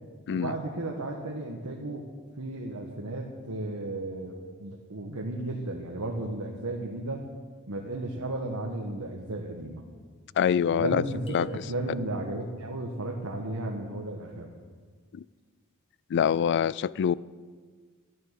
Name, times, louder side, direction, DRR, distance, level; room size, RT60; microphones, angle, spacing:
voice 1, 0.3-2.0 2.4-7.2 7.7-9.9 10.7-14.5, right 2 dB, 75° right, 1.4 m, -34 dB
voice 2, 10.4-11.0 11.3-11.5 15.1-15.2 16.1-17.2, left 8 dB, 55° left, 0.3 m, -25 dB
sound 1, 11.3-12.4, right 2 dB, 25° left, 2.2 m, -46 dB
12.5 x 9.7 x 7.5 m
head